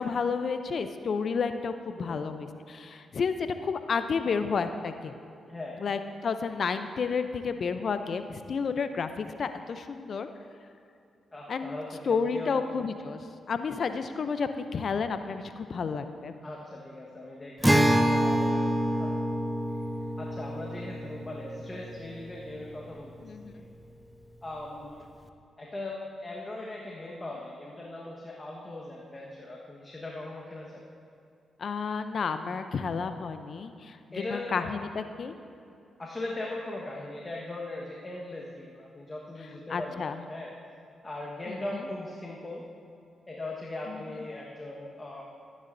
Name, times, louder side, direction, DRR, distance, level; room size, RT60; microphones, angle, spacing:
voice 1, 0.0-5.1 5.8-10.3 11.5-11.8 12.1-16.3 23.2-23.6 31.6-34.0 34.3-35.3 39.7-40.2 41.5-41.6 43.9-44.2, left 5 dB, 60° left, 9 dB, 0.6 m, -31 dB
voice 2, 5.5-5.8 11.3-12.7 16.4-19.2 20.2-23.1 23.4-23.7 24.4-25.0 25.6-30.8 34.1-34.8 36.0-40.5 41.0-42.6 43.3-45.2, left 2 dB, 30° left, -3 dB, 1.4 m, -39 dB
Acoustic guitar, 17.6-23.1, equal, 10° right, 0.8 m, -27 dB
14.5 x 9.5 x 2.7 m, 2.5 s
supercardioid pair, 45°, 0 cm